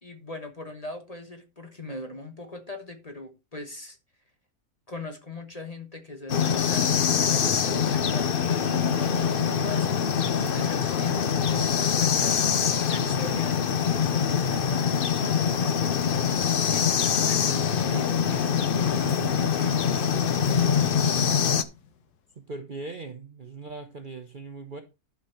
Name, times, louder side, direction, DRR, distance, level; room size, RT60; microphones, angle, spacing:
voice 1, 0.0-4.0 4.9-12.4 12.9-16.9 17.2-18.6 18.9-19.8, left 1 dB, 25° left, 1.3 m, -41 dB
sound 1, 6.3-21.6, left 7 dB, 50° left, 0.7 m, -24 dB
sound 2, 17.9-22.3, left 5 dB, 85° left, 1.7 m, -43 dB
voice 2, 22.4-24.8, right 3 dB, 40° right, 0.9 m, -39 dB
11.5 x 5.8 x 4.4 m
omnidirectional pair, 1.6 m